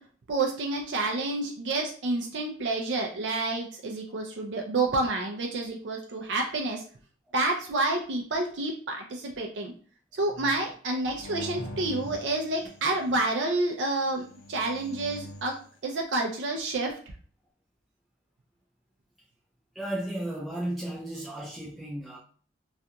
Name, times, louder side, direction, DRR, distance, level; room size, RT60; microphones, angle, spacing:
voice 1, 0.3-6.8 7.3-9.7 10.1-15.6 15.8-17.0, right 2 dB, 75° right, 1 dB, 0.4 m, -29 dB
sound 1, 11.2-13.1 14.1-15.6, equal, 85° left, 0.6 m, -43 dB
voice 2, 19.7-22.2, right 1 dB, ahead, -6 dB, 0.4 m, -35 dB
2.4 x 2.2 x 2.7 m, 0.43 s
head